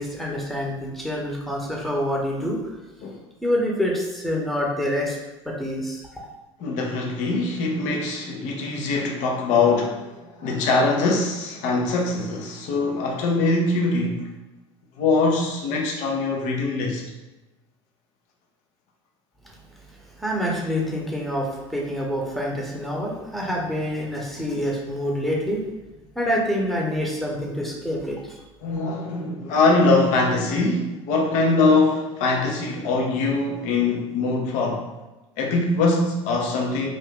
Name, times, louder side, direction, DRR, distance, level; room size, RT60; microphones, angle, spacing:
voice 1, 0.0-2.6 3.4-5.2 5.5-6.0 20.2-25.6 26.1-28.4, equal, ahead, -3 dB, 0.8 m, -26 dB
voice 2, 6.6-14.3 15.0-17.0 24.5-24.6 28.6-34.9 35.4-36.9, left 3 dB, 55° left, 0 dB, 0.6 m, -22 dB
2.5 x 2.5 x 3.6 m, 1.1 s
figure-of-eight pair, 70°, 15 cm